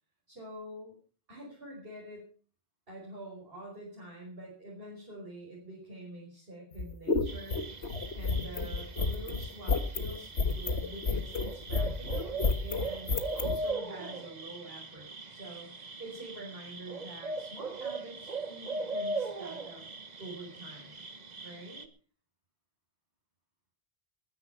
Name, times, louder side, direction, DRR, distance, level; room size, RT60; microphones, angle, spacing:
voice 1, 0.3-1.0 1.3-2.3 2.9-7.6 8.1-12.3 12.6-19.9 20.2-21.0 21.4-21.9, right 1 dB, 60° right, -3 dB, 5.5 m, -46 dB
sound 1, 6.7-13.6, left 4 dB, 85° left, 1.8 m, -30 dB
sound 2, 7.3-21.9, right 3 dB, 40° right, 1.3 m, -40 dB
20.0 x 9.9 x 5.8 m, 0.41 s
omnidirectional pair, 1.1 m